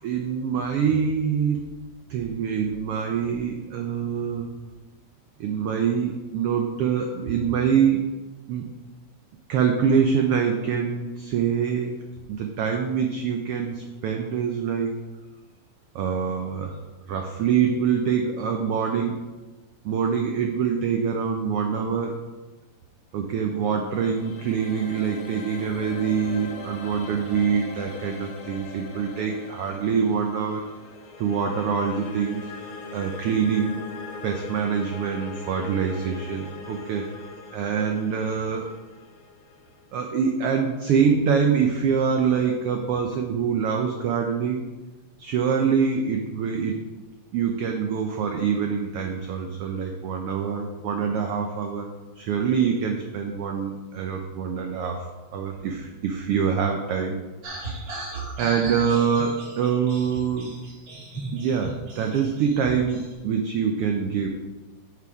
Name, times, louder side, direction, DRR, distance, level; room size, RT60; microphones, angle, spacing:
voice 1, 0.0-1.7 2.1-4.5 5.4-8.1 8.5-8.7 9.5-12.0 12.3-15.0 15.9-16.8 17.1-19.2 19.8-22.1 23.1-30.7 31.2-32.5 32.9-33.8 34.2-37.1 37.5-38.7 39.9-44.7 45.2-46.8 47.3-51.9 52.2-55.0 55.3-57.2 57.7-57.8 58.4-60.6 61.3-64.3, right 6 dB, 90° right, 3 dB, 1.2 m, -25 dB
sound 1, 23.5-40.5, left 4 dB, 75° left, 2.4 m, -41 dB
sound 2, 57.4-63.1, right 3 dB, 55° right, 2.5 m, -37 dB
8.5 x 4.9 x 4.7 m, 1.2 s
omnidirectional pair, 3.4 m